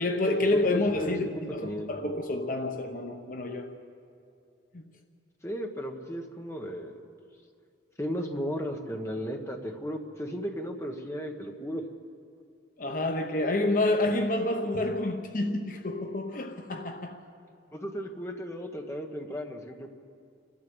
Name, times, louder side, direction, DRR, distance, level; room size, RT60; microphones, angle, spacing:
voice 1, 0.0-3.8 4.7-4.9 12.8-17.2, left 2 dB, 45° left, 0.9 m, -28 dB
voice 2, 0.6-1.2 1.6-1.9 5.4-7.0 8.0-11.8 17.7-19.9, equal, 15° left, 1.4 m, -35 dB
30.0 x 12.5 x 8.1 m
head